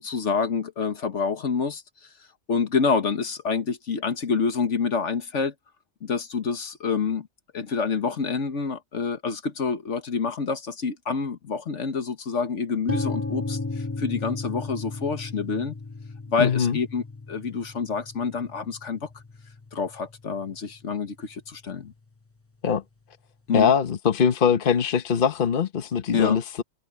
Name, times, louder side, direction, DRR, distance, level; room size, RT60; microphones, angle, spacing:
voice 1, 0.0-1.8 2.5-5.5 6.0-7.3 7.5-15.7 16.3-17.0 17.3-19.1 19.7-21.9 23.5-23.7 26.1-26.4, left 5 dB, 80° left, 1.7 m, -27 dB
sound 1, 12.9-20.8, left 3 dB, 15° left, 0.8 m, -35 dB
voice 2, 16.4-16.8 22.6-22.8 23.5-26.6, left 7 dB, 50° left, 1.2 m, -22 dB
omnidirectional pair, 1.2 m